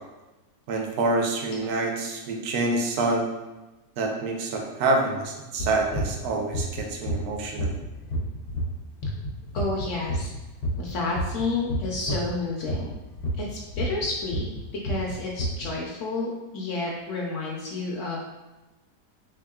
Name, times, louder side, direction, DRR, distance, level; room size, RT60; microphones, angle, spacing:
voice 1, 0.7-3.3 4.0-7.8, right 2 dB, 65° right, 2 dB, 0.9 m, -27 dB
sound 1, 5.6-12.3 12.6-15.7, equal, 85° left, 1.3 m, -29 dB
voice 2, 9.5-10.3 10.8-12.9 13.4-14.4 14.8-18.2, left 3 dB, 70° left, -2 dB, 0.7 m, -30 dB
3.6 x 3.5 x 2.3 m, 1.1 s
omnidirectional pair, 1.8 m